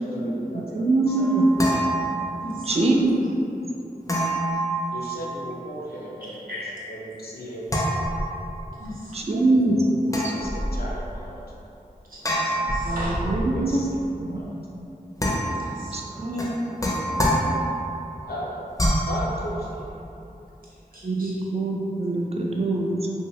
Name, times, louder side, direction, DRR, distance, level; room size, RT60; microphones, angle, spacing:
voice 1, 0.0-1.8 4.9-6.4 6.9-8.1 10.3-11.4 13.3-14.5 18.3-18.7 19.1-19.9, equal, 80° left, -4 dB, 0.5 m, -36 dB
voice 2, 0.8-1.4 2.7-3.2 9.1-9.8 10.2-10.3 12.8-13.8 14.2-14.4 15.9-16.5 21.0-23.1, right 2 dB, 40° right, 0 dB, 0.4 m, -23 dB
sound 1, 1.1-2.6 4.1-5.5 7.7-8.7 10.1-11.1 12.2-13.7 15.2-15.8 16.4-17.9 18.8-19.2, equal, 20° left, 0.5 m, -26 dB
voice 3, 2.4-3.1 6.2-6.7 8.8-9.2 12.1-13.2 15.6-16.4 20.9-21.5, equal, 70° right, -8 dB, 0.9 m, -37 dB
2.8 x 2.7 x 3.1 m, 2.8 s
wide cardioid pair, 60°, 16 cm